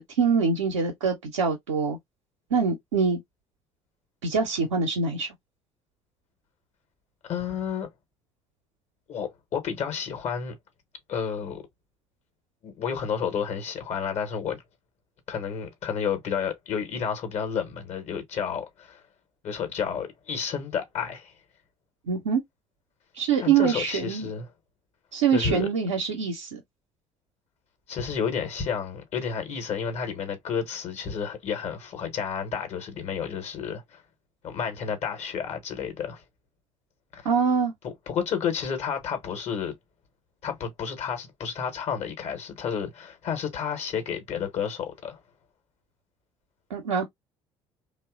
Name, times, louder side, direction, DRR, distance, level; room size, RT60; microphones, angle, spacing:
voice 1, 0.0-2.0 2.5-3.2 4.2-5.3 22.1-22.4 23.1-24.3 25.1-26.6 37.2-37.7 46.7-47.0, right 6 dB, 75° right, 0.6 m, -24 dB
voice 2, 7.2-7.9 9.1-10.6 11.1-11.6 12.6-14.6 15.3-19.0 19.4-21.3 23.4-24.5 25.3-25.7 27.9-34.0 34.4-36.2 37.1-37.3 37.8-39.7 40.4-45.2, left 7 dB, 45° left, 1.0 m, -31 dB
2.9 x 2.0 x 2.4 m
figure-of-eight pair, 55°, 16 cm